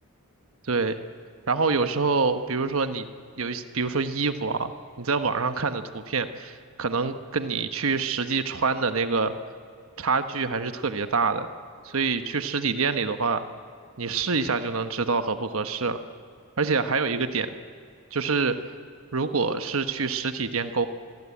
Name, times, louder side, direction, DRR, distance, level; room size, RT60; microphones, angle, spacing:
voice 1, 0.6-1.0 1.5-3.1 3.4-4.7 5.0-9.3 10.0-11.5 11.8-13.4 14.0-16.0 16.6-17.5 18.1-18.6 19.1-20.9, right 4 dB, 70° right, 9 dB, 1.1 m, -26 dB
25.5 x 22.0 x 8.5 m, 2.2 s
head